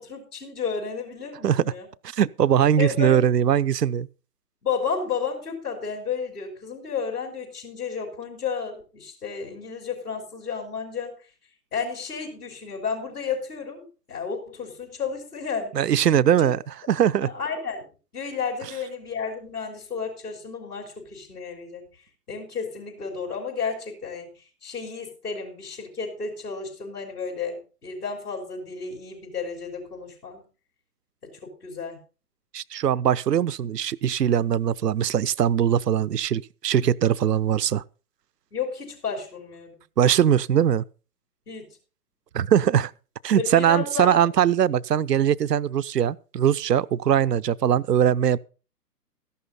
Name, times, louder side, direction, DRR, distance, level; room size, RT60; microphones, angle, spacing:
voice 1, 0.0-1.9 2.8-3.2 4.6-11.1 11.7-15.9 16.4-16.5 17.2-17.8 18.1-21.9 22.3-24.3 24.6-30.4 31.2-32.0 38.5-39.8 41.5-41.8 43.4-44.2, left 5 dB, 65° left, 4.8 m, -32 dB
voice 2, 1.4-1.7 2.1-4.1 15.7-16.6 16.9-17.3 32.5-37.8 40.0-40.8 42.3-42.9 43.2-48.4, right 9 dB, 75° right, 0.6 m, -21 dB
14.0 x 11.5 x 4.2 m
figure-of-eight pair, 125°, 49 cm